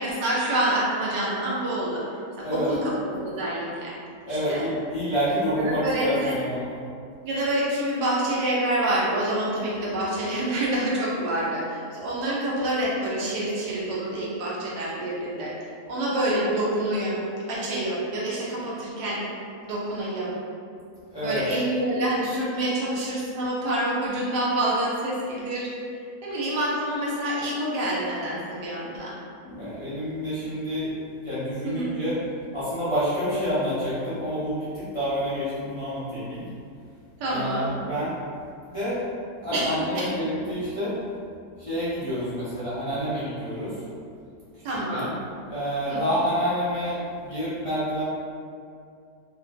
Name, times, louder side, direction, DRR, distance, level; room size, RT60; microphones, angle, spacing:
voice 1, 0.0-2.0 2.4-3.9 4.3-4.6 5.0-5.2 5.5-6.4 7.2-17.2 17.5-19.2 19.6-20.3 21.2-25.7 26.2-29.2 31.6-32.0 37.2-37.7 39.5-40.1 44.6-45.1 45.9-46.0, right 1 dB, 85° right, -6 dB, 1.3 m, -27 dB
voice 2, 2.4-2.7 4.3-6.6 21.1-21.4 29.4-30.9 31.2-32.2 32.5-36.4 37.3-38.1 38.7-39.0 39.4-41.0 41.6-43.8 44.5-45.1 45.5-48.0, equal, 45° left, -13 dB, 0.4 m, -28 dB
3.3 x 2.5 x 2.2 m, 2.4 s
omnidirectional pair, 1.7 m